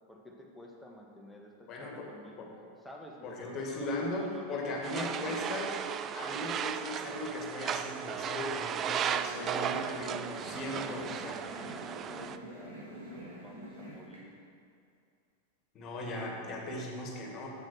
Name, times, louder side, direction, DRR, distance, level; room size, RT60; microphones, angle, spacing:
voice 1, 0.1-2.5 2.8-5.5 10.8-11.1 11.4-14.4, left 1 dB, 5° left, -1 dB, 1.4 m, -50 dB
voice 2, 1.7-2.1 2.4-2.5 3.2-5.7 6.1-11.7 15.7-17.5, left 2 dB, 30° left, 0 dB, 2.0 m, -38 dB
sound 1, 4.8-12.4, right 8 dB, 30° right, 0.3 m, -35 dB
sound 2, 9.0-14.2, equal, 70° right, 2.5 m, -47 dB
7.9 x 7.3 x 6.1 m, 2.5 s
figure-of-eight pair, 90°, 0 cm